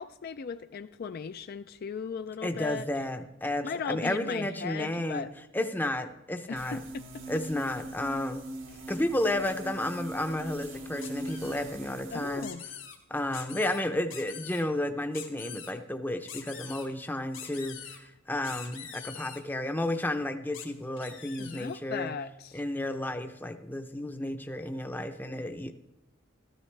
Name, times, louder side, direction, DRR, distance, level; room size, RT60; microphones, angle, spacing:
voice 1, 0.0-2.9 3.6-5.3 6.5-7.2 8.7-8.8 12.1-12.6 21.4-22.6, left 6 dB, 50° left, 10 dB, 0.4 m, -37 dB
voice 2, 2.4-5.3 5.5-6.8 7.3-8.4 8.9-12.5 13.1-22.1 22.5-25.7, left 1 dB, 10° left, 7 dB, 0.6 m, -32 dB
sound 1, 6.6-12.5, right 1 dB, 80° right, 1.5 m, -41 dB
sound 2, 11.0-11.7 12.4-13.0 13.3-13.8 14.1-14.6 15.1-15.7 16.3-16.9 17.3-18.0 18.4-19.4 20.5-20.7 21.0-21.8, left 8 dB, 75° left, 1.8 m, -44 dB
13.0 x 13.0 x 3.3 m, 0.91 s
head